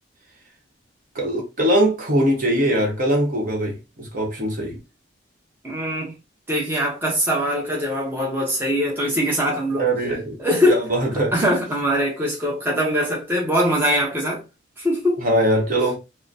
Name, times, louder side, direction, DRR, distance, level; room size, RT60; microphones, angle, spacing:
voice 1, 1.1-4.8 9.7-10.3 10.7-11.3 15.2-16.0, right 1 dB, 45° right, 1.0 m, -21 dB
voice 2, 5.6-6.1 6.5-9.9 10.4-10.8 11.3-14.4 14.8-15.3, equal, 10° right, 0.8 m, -22 dB
3.7 x 2.1 x 2.6 m
head